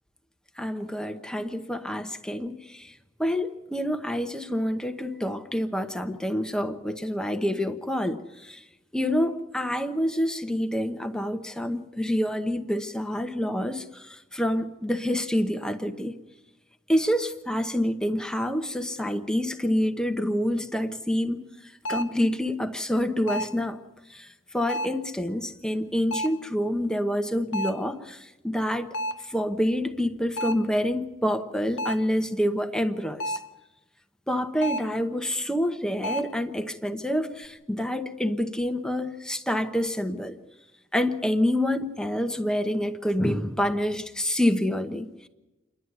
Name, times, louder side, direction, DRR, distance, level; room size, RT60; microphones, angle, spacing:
voice 1, 0.6-2.9 3.2-8.6 8.9-16.2 16.9-21.5 21.9-23.8 24.1-24.3 24.5-28.9 29.3-33.4 34.3-40.4 40.9-45.3, equal, 5° left, 0.9 m, -27 dB
sound 1, 20.7-20.8 21.9-22.3 23.3-23.6 24.7-25.1 26.1-26.5 27.5-27.9 28.9-29.3 30.4-30.7 31.8-32.1 33.2-33.6 34.6-35.0 36.0-36.4, equal, 90° left, 0.9 m, -31 dB
28.5 x 11.5 x 9.3 m
head